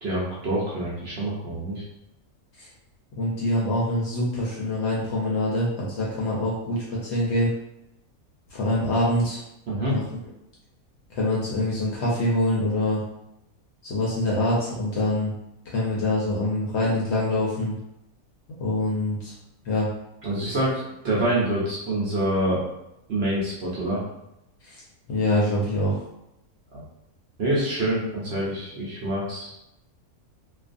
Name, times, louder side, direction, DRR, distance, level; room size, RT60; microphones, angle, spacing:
voice 1, 0.0-1.8 9.7-9.9 20.2-22.6 23.1-24.0 26.7-26.8 27.4-29.5, right 1 dB, 55° right, -6 dB, 0.8 m, -26 dB
voice 2, 3.2-7.5 8.5-9.4 9.9-10.1 11.1-13.0 13.8-15.3 15.7-17.7 18.6-19.3 19.6-19.9 24.6-24.8 25.1-26.0, left 1 dB, 60° left, -5 dB, 0.7 m, -25 dB
2.4 x 2.3 x 2.5 m, 0.85 s
omnidirectional pair, 1.5 m